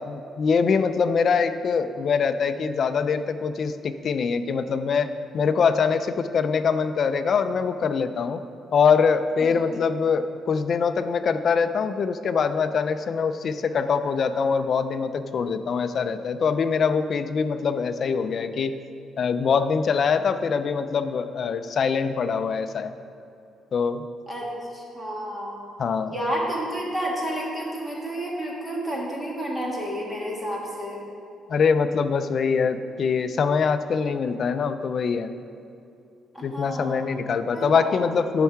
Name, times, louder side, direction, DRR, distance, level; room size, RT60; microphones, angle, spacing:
voice 1, 0.0-8.4 8.7-18.8 19.2-22.9 23.7-24.1 25.8-26.1 31.5-35.3 36.4-38.4, left 5 dB, 45° left, 10 dB, 0.4 m, -23 dB
voice 2, 24.3-25.6 26.0-31.0 36.3-37.0 37.5-37.9, right 1 dB, 5° right, -3 dB, 1.6 m, -30 dB
10.5 x 5.5 x 4.5 m, 2.6 s
cardioid pair, 150°, 0 cm